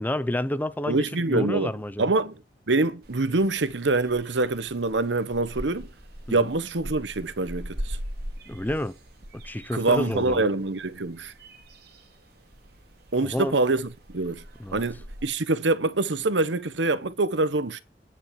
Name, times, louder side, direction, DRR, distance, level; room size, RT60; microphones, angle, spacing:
voice 1, 0.0-2.1 6.3-6.4 8.5-8.9 9.4-10.5 13.2-13.6 14.6-14.8, left 1 dB, 10° left, 0.6 m, -29 dB
voice 2, 0.9-1.7 2.0-2.4 2.7-5.9 6.3-8.0 9.7-11.3 13.1-14.4 14.7-17.8, right 3 dB, 80° right, 1.0 m, -25 dB
sound 1, 3.0-15.3, equal, 60° right, 2.7 m, -41 dB
9.8 x 6.0 x 8.4 m
head